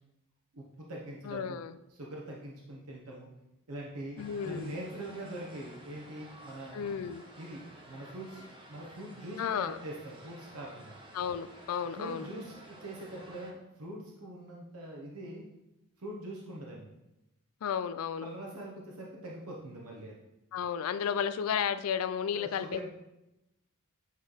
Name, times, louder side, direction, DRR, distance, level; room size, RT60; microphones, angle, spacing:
voice 1, 0.5-1.6 1.9-3.3 3.7-6.8 7.4-10.9 12.0-15.5 16.0-16.8 18.2-20.2 22.3-22.8, right 1 dB, 80° right, -2 dB, 0.9 m, -43 dB
voice 2, 1.2-1.8 4.2-4.8 6.7-7.2 9.4-9.8 11.1-12.3 17.6-18.3 20.5-22.8, left 7 dB, 70° left, 13 dB, 0.3 m, -33 dB
sound 1, 4.2-13.5, right 1 dB, 25° right, 0.9 m, -53 dB
8.2 x 3.2 x 3.9 m, 0.93 s
head